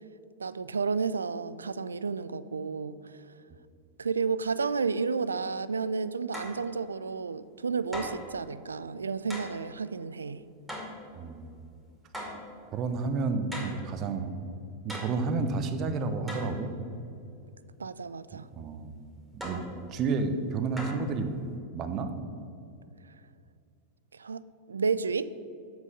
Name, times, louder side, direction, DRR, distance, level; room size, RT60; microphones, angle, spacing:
voice 1, 0.4-3.4 4.0-10.5 17.8-18.5 24.1-25.3, right 5 dB, 75° right, 16 dB, 0.3 m, -32 dB
sound 1, 6.3-6.6 7.9-8.3 9.3-9.6 10.7-11.0 12.1-12.4 13.5-13.8 14.9-15.2 16.3-16.6 19.4-19.7 20.8-21.1, equal, 10° right, 2.2 m, -38 dB
voice 2, 11.2-11.5 12.7-14.3 14.8-16.7 18.5-18.9 19.3-19.7 19.9-21.3 21.7-22.1, right 4 dB, 35° right, 8 dB, 0.8 m, -30 dB
7.5 x 6.1 x 6.5 m, 2.5 s
figure-of-eight pair, 90°, 0 cm